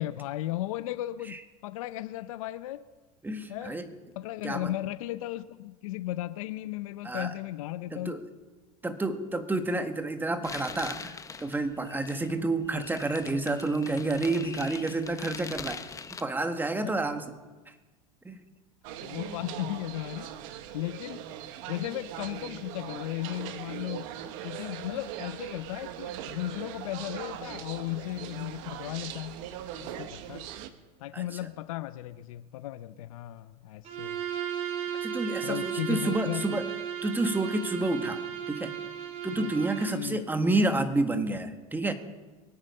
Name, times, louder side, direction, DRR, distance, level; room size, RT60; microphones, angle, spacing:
voice 1, 0.0-2.8 3.5-3.8 4.2-8.2 16.8-16.9 19.0-20.3 20.7-21.4 21.7-24.1 24.4-29.4 29.8-30.4 31.0-34.2 35.4-36.6 39.4-39.5 39.9-40.2, left 15 dB, 85° left, 13 dB, 0.6 m, -35 dB
voice 2, 3.2-3.9 4.4-4.7 7.0-7.3 7.9-8.2 8.8-15.9 16.2-17.3 18.2-18.4 31.1-31.2 35.0-36.7 37.0-38.2 38.5-38.8 39.2-41.9, right 2 dB, 10° right, 8 dB, 1.6 m, -29 dB
sound 1, 10.4-16.2, left 5 dB, 20° left, 0.9 m, -42 dB
sound 2, 18.8-30.7, right 11 dB, 70° right, 1.2 m, -40 dB
Bowed string instrument, 33.8-40.0, right 9 dB, 40° right, 3.0 m, -35 dB
23.5 x 9.0 x 5.5 m, 1.2 s
supercardioid pair, 105°, 17 cm